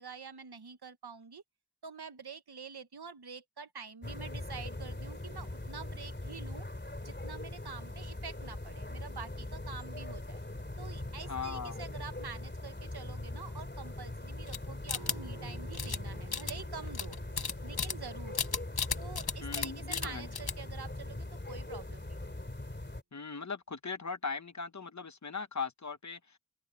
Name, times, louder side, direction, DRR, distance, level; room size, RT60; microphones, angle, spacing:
voice 1, 0.0-1.4 1.8-6.6 7.0-10.4 10.8-17.2 17.6-18.6 19.0-22.3, right 5 dB, 80° right, 1.3 m, -47 dB
sound 1, 4.0-23.0, left 2 dB, 30° left, 3.2 m, -41 dB
voice 2, 11.3-11.8 19.4-20.3 23.1-26.4, left 5 dB, 50° left, 1.1 m, -39 dB
sound 2, 14.5-15.5 15.7-16.0 16.3-18.1 18.3-19.7 19.9-20.1 20.3-20.7, left 6 dB, 75° left, 0.9 m, -34 dB
sound 3, 14.9-20.3, right 4 dB, 55° right, 3.4 m, -56 dB
open air
wide cardioid pair, 55°, 38 cm